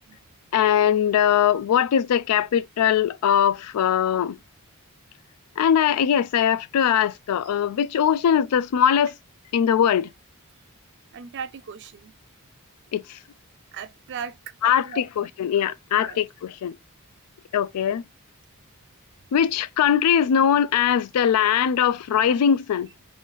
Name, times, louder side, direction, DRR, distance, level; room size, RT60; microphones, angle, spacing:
voice 1, 0.5-4.4 5.6-9.1 9.5-10.1 12.9-13.2 14.6-16.8 17.5-18.0 19.3-22.9, left 9 dB, 90° left, 0.3 m, -21 dB
voice 2, 11.1-12.1 13.7-14.4 14.6-15.0 15.6-15.7 16.0-16.2, right 7 dB, 55° right, 0.4 m, -37 dB
3.8 x 2.5 x 3.1 m
head